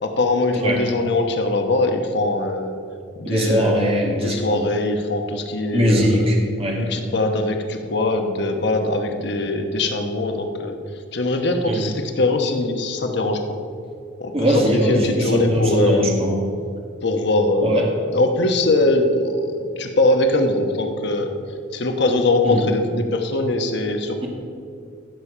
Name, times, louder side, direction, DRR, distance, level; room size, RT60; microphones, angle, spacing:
voice 1, 0.0-2.8 3.2-6.2 6.7-10.8 11.1-13.6 14.2-16.1 17.0-21.3 21.7-24.3, left 2 dB, 60° left, 4 dB, 1.0 m, -22 dB
voice 2, 3.2-4.6 5.7-6.8 11.6-11.8 14.3-16.4 17.6-17.9 22.4-22.7, equal, 30° right, -1 dB, 1.6 m, -20 dB
14.5 x 7.0 x 5.0 m, 2.4 s
head